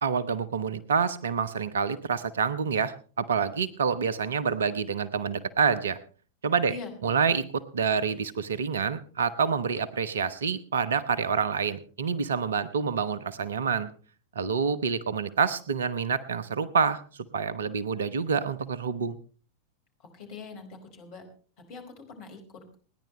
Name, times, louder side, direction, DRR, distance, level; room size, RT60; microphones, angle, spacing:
voice 1, 0.0-6.0 6.4-6.8 7.0-13.9 14.3-17.0 17.3-19.2, right 6 dB, 65° right, 17 dB, 0.9 m, -27 dB
voice 2, 20.0-21.2 21.6-22.7, left 4 dB, 45° left, 3 dB, 4.9 m, -43 dB
28.5 x 10.5 x 3.2 m, 0.41 s
figure-of-eight pair, 90°, 0 cm